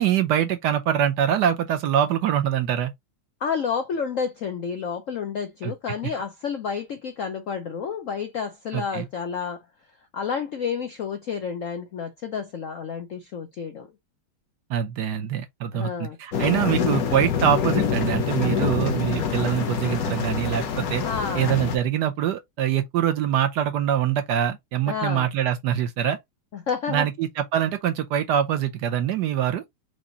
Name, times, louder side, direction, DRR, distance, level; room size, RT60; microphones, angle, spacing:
voice 1, 0.0-2.9 5.6-5.7 8.7-9.1 14.7-21.0 21.3-26.2 26.9-29.6, right 10 dB, 70° right, 1.1 m, -24 dB
voice 2, 3.4-9.6 10.1-13.9 15.7-16.2 21.0-21.6 24.9-25.3 26.5-27.1, left 6 dB, 75° left, 0.7 m, -30 dB
sound 1, 16.3-21.8, left 7 dB, 55° left, 1.2 m, -26 dB
4.9 x 2.5 x 3.9 m
omnidirectional pair, 2.2 m